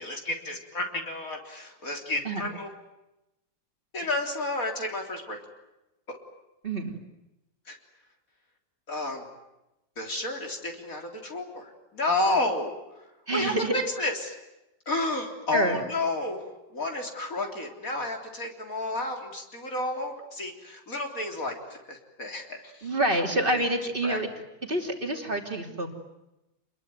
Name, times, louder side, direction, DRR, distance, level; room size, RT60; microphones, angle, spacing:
voice 1, 0.0-2.7 3.9-5.4 7.7-7.8 8.9-9.3 10.0-12.7 13.3-14.4 14.9-23.4 24.0-24.2, left 2 dB, 45° left, 2 dB, 4.0 m, -31 dB
voice 2, 6.6-7.0 13.3-13.7 15.5-15.9 22.8-24.3 24.6-25.9, right 1 dB, 25° right, 2 dB, 3.2 m, -27 dB
28.0 x 22.0 x 9.5 m, 0.95 s
omnidirectional pair, 2.0 m